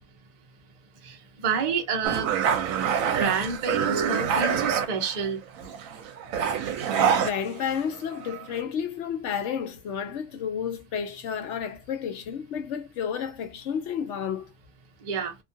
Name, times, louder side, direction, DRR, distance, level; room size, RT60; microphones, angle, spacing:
voice 1, 1.4-2.3 3.2-5.4 15.0-15.4, right 6 dB, 40° right, 0.6 m, -28 dB
sound 1, 2.0-5.3 5.6-7.9 8.2-8.6, right 7 dB, 75° right, 1.0 m, -26 dB
voice 2, 7.2-14.5, left 7 dB, 60° left, 0.9 m, -31 dB
2.9 x 2.3 x 2.6 m
omnidirectional pair, 1.5 m